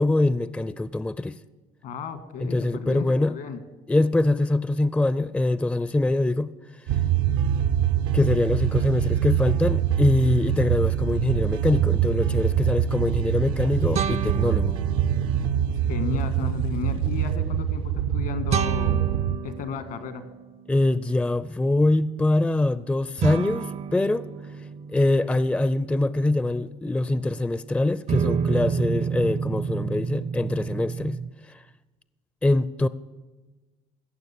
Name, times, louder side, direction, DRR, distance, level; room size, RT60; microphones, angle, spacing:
voice 1, 0.0-1.4 2.4-3.3 3.9-6.5 8.1-14.7 20.7-24.3 24.9-31.2 31.5-31.6 32.4-32.9, left 2 dB, 10° left, 0.4 m, -23 dB
voice 2, 1.8-3.6 15.9-19.0 19.4-20.2, left 6 dB, 70° left, 1.6 m, -34 dB
sound 1, 6.9-19.4, right 10 dB, 85° right, 0.7 m, -24 dB
sound 2, 13.9-15.6 18.5-20.9 23.2-27.5 28.1-31.3, right 6 dB, 40° right, 0.5 m, -30 dB
16.0 x 6.8 x 8.4 m
supercardioid pair, 70°, 16 cm